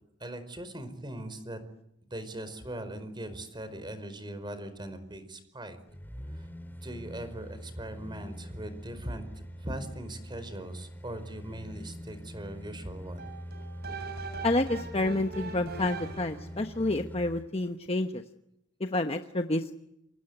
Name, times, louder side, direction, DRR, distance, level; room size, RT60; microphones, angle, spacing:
voice 1, 0.2-1.6 2.1-5.8 6.7-9.2 9.6-13.3, right 1 dB, 25° right, 12 dB, 4.8 m, -40 dB
sound 1, 5.9-17.5 17.9-18.0, equal, 10° left, 2.3 m, -44 dB
sound 2, 13.2-16.5, right 4 dB, 55° right, 6.9 m, -41 dB
voice 2, 14.4-18.2 18.8-19.7, left 2 dB, 30° left, 6 dB, 1.2 m, -29 dB
28.0 x 25.5 x 8.1 m, 0.79 s
head